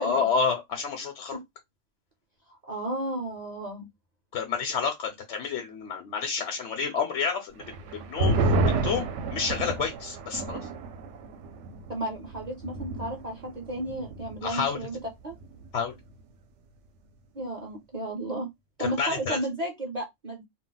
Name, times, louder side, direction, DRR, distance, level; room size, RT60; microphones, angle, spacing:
voice 1, 0.0-1.4 4.3-10.6 14.4-14.8 15.7-16.0 18.8-19.4, left 5 dB, 70° left, 0.9 m, -29 dB
voice 2, 2.5-3.9 11.9-15.0 15.2-15.3 17.3-18.5 18.8-20.4, right 1 dB, 45° right, 0.6 m, -33 dB
sound 1, 7.6-14.5 14.8-14.9 15.3-15.8, right 2 dB, 75° right, 0.9 m, -30 dB
2.3 x 2.0 x 3.8 m
omnidirectional pair, 1.2 m